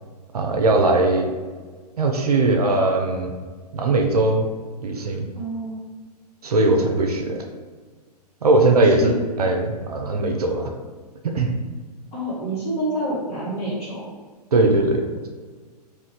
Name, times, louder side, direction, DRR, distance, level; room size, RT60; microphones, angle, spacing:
voice 1, 0.3-1.3 2.0-3.3 3.7-4.5 4.8-5.3 6.4-7.4 8.4-9.1 9.4-10.7 11.2-11.5 14.5-15.0, right 2 dB, 65° right, 2 dB, 0.5 m, -19 dB
voice 2, 5.3-5.8 8.8-9.2 12.1-14.1, right 1 dB, 30° left, -7 dB, 1.2 m, -28 dB
2.4 x 2.4 x 3.7 m, 1.5 s
figure-of-eight pair, 110°, 21 cm